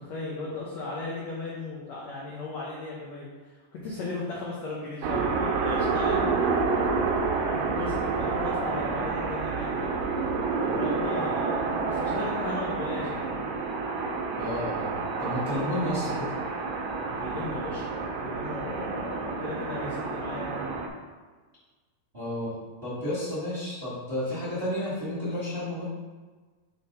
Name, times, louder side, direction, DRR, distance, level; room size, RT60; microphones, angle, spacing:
voice 1, 0.0-6.3 7.5-9.9 10.7-13.3 17.1-17.9 18.2-20.7, left 2 dB, 80° left, -5 dB, 1.5 m, -36 dB
sound 1, 5.0-20.9, right 4 dB, 75° right, 2.0 m, -29 dB
voice 2, 14.4-16.3 22.1-22.5 22.8-25.8, left 1 dB, 30° right, -10 dB, 1.0 m, -31 dB
6.3 x 3.3 x 5.4 m, 1.4 s
omnidirectional pair, 4.4 m